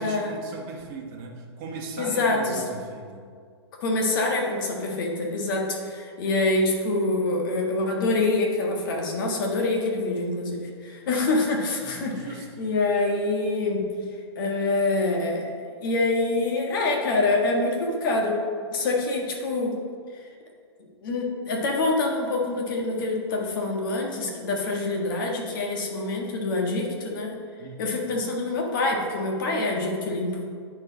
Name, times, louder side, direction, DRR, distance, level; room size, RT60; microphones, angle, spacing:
voice 1, 0.0-3.3 11.8-12.7 27.6-27.8, right 3 dB, 35° right, 0 dB, 1.2 m, -38 dB
voice 2, 2.0-2.6 3.8-12.1 12.6-13.8 14.3-18.4 18.7-19.8 21.0-27.4 27.8-30.3, left 2 dB, 50° left, 0 dB, 1.5 m, -25 dB
9.5 x 4.4 x 4.0 m, 2.1 s
hypercardioid pair, 150°, 14 cm